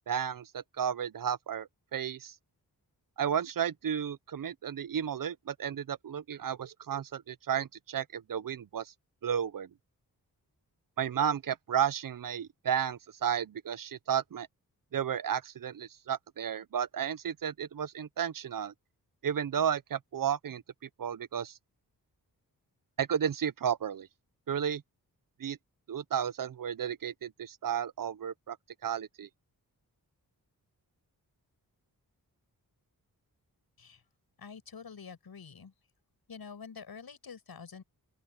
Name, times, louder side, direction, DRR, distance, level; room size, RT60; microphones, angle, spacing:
voice 1, 0.1-2.3 3.2-8.9 9.2-9.7 11.0-14.5 14.9-18.7 19.2-20.6 21.0-21.6 23.0-24.1 24.5-24.8 25.4-25.6 25.9-28.6 28.8-29.3, right 8 dB, 60° right, 0.7 m, -33 dB
voice 2, 34.4-35.7 36.3-37.8, left 6 dB, 70° left, 7.0 m, -47 dB
open air
cardioid pair, 70°, 38 cm